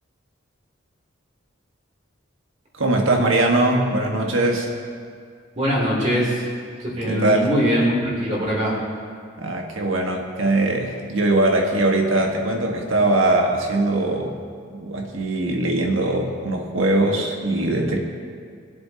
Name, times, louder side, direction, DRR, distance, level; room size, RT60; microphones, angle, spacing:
voice 1, 2.7-4.7 7.0-7.5 9.4-14.4 14.7-18.0, right 2 dB, 80° right, 1 dB, 1.5 m, -21 dB
voice 2, 5.5-6.5 6.8-8.7, equal, 35° right, -5 dB, 2.9 m, -22 dB
20.5 x 7.7 x 2.9 m, 2.1 s
head